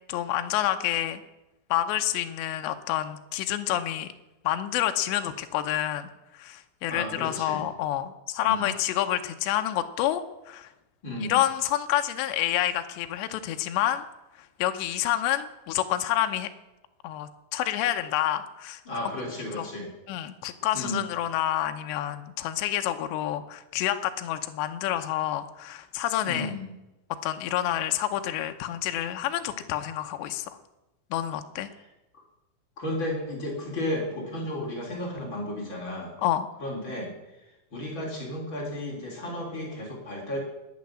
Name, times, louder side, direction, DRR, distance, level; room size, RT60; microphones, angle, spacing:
voice 1, 0.1-1.2 1.7-4.1 4.4-6.1 6.3-10.7 11.3-14.0 14.4-16.5 17.0-18.8 19.6-19.7 20.1-26.6 27.2-30.6 31.1-31.7 36.2-36.5, left 12 dB, 80° left, 7 dB, 2.6 m, -28 dB
voice 2, 6.9-7.6 8.4-8.7 11.0-11.4 18.8-19.9 20.7-21.0 26.2-26.7 32.8-36.1 36.6-37.1 37.7-40.4, left 1 dB, 25° left, -2 dB, 3.4 m, -33 dB
20.0 x 8.6 x 7.5 m, 0.97 s
omnidirectional pair, 6.0 m